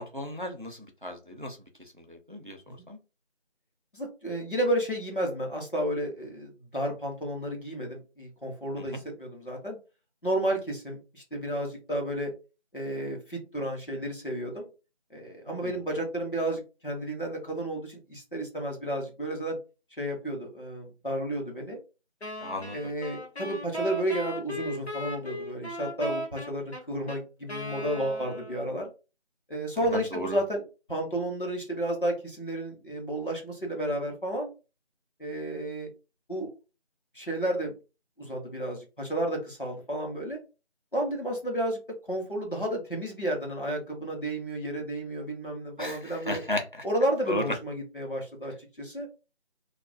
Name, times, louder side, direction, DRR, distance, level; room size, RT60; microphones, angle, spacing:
voice 1, 0.0-3.0 8.8-9.0 15.5-15.8 22.4-22.9 29.8-30.4 45.8-46.8 47.3-47.4, left 1 dB, 50° right, 4 dB, 0.4 m, -35 dB
voice 2, 3.9-9.8 10.2-12.3 12.7-14.7 15.1-19.6 20.0-21.8 22.7-28.9 29.5-30.6 30.9-34.5 35.2-35.9 36.3-36.5 37.1-37.7 38.2-40.4 40.9-41.8 42.1-46.4 46.8-49.1, right 1 dB, 50° left, 0 dB, 0.9 m, -32 dB
Wind instrument woodwind instrument, 22.2-28.8, left 1 dB, 70° left, 1.1 m, -37 dB
2.3 x 2.2 x 2.4 m, 0.31 s
figure-of-eight pair, 180°, 34 cm